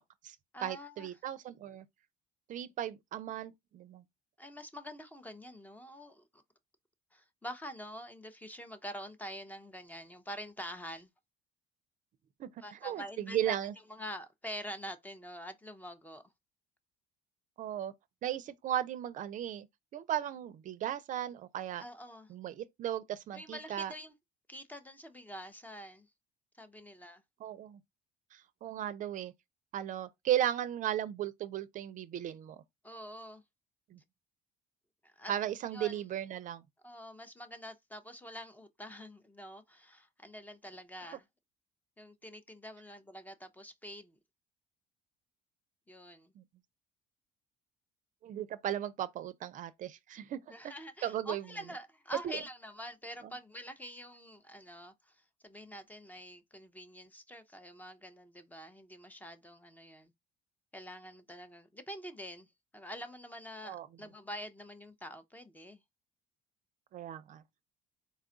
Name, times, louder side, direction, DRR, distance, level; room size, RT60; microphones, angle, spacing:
voice 1, 0.0-1.8 2.5-4.0 12.4-12.5 12.8-13.7 17.6-17.9 18.2-19.7 19.9-21.8 22.3-23.9 27.4-27.8 28.3-29.3 29.7-32.6 33.9-34.0 35.3-36.6 46.4-46.5 48.2-50.4 51.0-51.4 52.2-52.4 63.6-63.9 66.9-67.4, right 11 dB, 50° right, 0.5 m, -36 dB
voice 2, 0.5-1.1 4.4-6.3 7.1-11.1 12.6-13.6 13.9-16.2 21.8-22.3 23.3-24.1 24.5-26.1 26.6-27.2 32.8-33.4 35.0-35.3 35.7-36.0 36.8-41.2 42.0-44.2 45.9-46.3 50.5-55.2 55.4-60.1 60.7-62.5 62.7-65.8, equal, 10° left, 0.6 m, -46 dB
4.2 x 2.3 x 3.8 m
cardioid pair, 110°, 17 cm